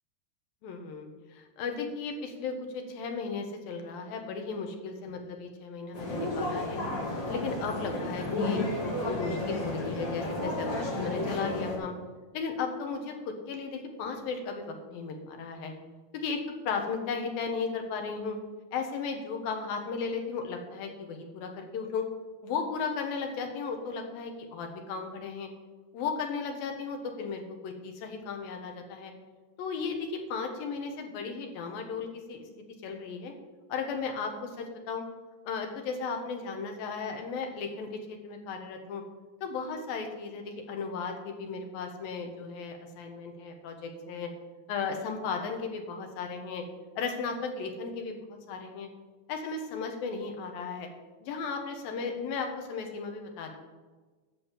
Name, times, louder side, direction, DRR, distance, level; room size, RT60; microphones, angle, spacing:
voice 1, 0.6-6.8 7.3-10.7 11.0-11.9 12.3-15.7 16.1-18.4 18.7-22.0 22.4-25.5 25.9-29.1 29.6-32.4 32.8-33.3 33.7-35.0 35.4-39.0 39.4-44.3 44.7-46.6 47.0-48.9 49.3-50.9 51.2-53.6, left 5 dB, 70° left, 4 dB, 3.0 m, -35 dB
sound 1, 5.9-11.8, left 2 dB, 30° left, 2.9 m, -32 dB
11.5 x 6.5 x 7.5 m, 1.3 s
omnidirectional pair, 4.6 m